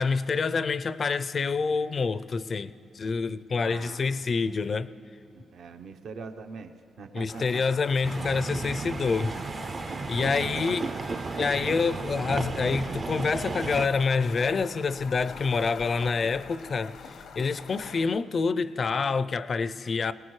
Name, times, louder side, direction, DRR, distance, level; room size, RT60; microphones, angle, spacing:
voice 1, 0.0-4.9 7.1-9.3 10.1-10.9 11.4-20.1, left 4 dB, 45° left, 0.4 m, -27 dB
voice 2, 3.5-4.2 5.3-7.8 10.3-11.4, right 4 dB, 70° right, 0.7 m, -43 dB
sound 1, 7.3-18.1, left 5 dB, 85° left, 0.8 m, -45 dB
sound 2, 8.0-13.9, right 4 dB, 40° right, 0.5 m, -34 dB
21.5 x 19.0 x 3.2 m
cardioid pair, 90°, 0 cm